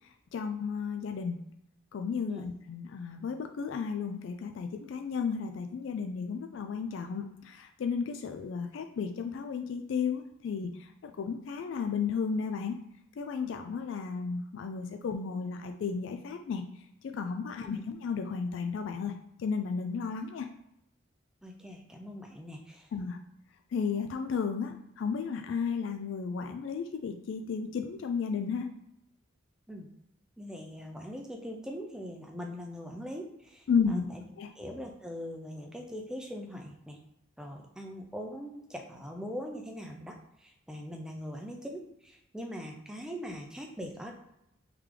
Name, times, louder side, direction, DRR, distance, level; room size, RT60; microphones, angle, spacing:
voice 1, 0.3-1.4 1.9-12.8 13.2-16.6 17.0-19.1 19.4-20.5 22.9-23.2 23.7-28.7 33.7-34.1 34.4-34.5, left 5 dB, 65° left, 6 dB, 0.3 m, -33 dB
voice 2, 21.4-22.9 29.7-29.9 30.4-34.2 34.6-37.0 37.4-44.1, equal, 5° right, 2 dB, 0.4 m, -42 dB
3.7 x 3.1 x 3.3 m, 0.81 s
head